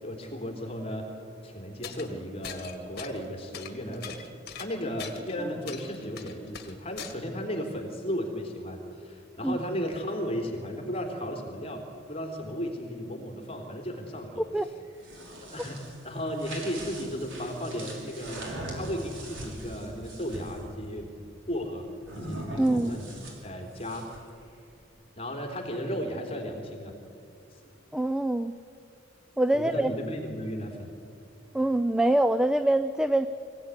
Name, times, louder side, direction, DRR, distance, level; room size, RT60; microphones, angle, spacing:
voice 1, 0.0-1.1 1.4-4.2 4.5-11.8 12.1-14.4 15.4-18.5 18.7-21.1 21.5-21.8 22.1-24.1 25.1-26.9 29.5-30.9, equal, 30° left, 2 dB, 3.4 m, -35 dB
sound 1, 1.8-2.1 2.4-3.3 3.5-5.3 5.7-7.1, left 8 dB, 55° left, 2.0 m, -41 dB
sound 2, 14.8-20.6 22.0-24.3, right 1 dB, 70° right, 5.5 m, -41 dB
voice 2, 22.6-23.0 27.9-28.5 29.4-29.9 31.5-33.3, right 1 dB, 5° right, 11 dB, 0.4 m, -24 dB
24.5 x 17.0 x 9.7 m, 2.6 s
head